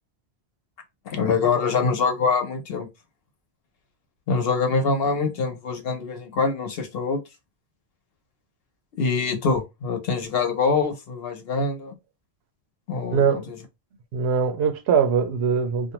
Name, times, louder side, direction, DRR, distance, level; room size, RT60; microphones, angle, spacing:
voice 1, 1.1-2.9 4.3-7.2 9.0-11.9 12.9-13.6, left 4 dB, 70° left, 0.9 m, -24 dB
voice 2, 13.1-13.4 14.1-15.9, right 6 dB, 80° right, 0.8 m, -22 dB
2.5 x 2.1 x 2.8 m
omnidirectional pair, 1.1 m